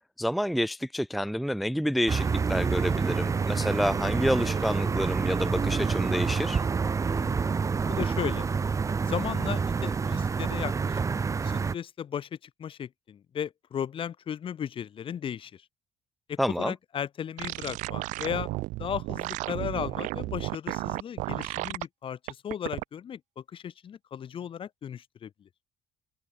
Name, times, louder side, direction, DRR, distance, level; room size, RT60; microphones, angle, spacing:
voice 1, 0.2-6.6 16.4-16.7, equal, ahead, 0.4 m, -28 dB
sound 1, 2.1-11.7, right 5 dB, 25° right, 1.0 m, -28 dB
voice 2, 7.0-7.5 7.9-8.5 9.0-15.6 16.3-18.5 18.8-22.2 22.4-25.3, left 8 dB, 45° left, 2.8 m, -36 dB
sound 2, 17.4-21.8 22.3-22.8, right 20 dB, 85° right, 0.5 m, -33 dB
cardioid pair, 120°, 12 cm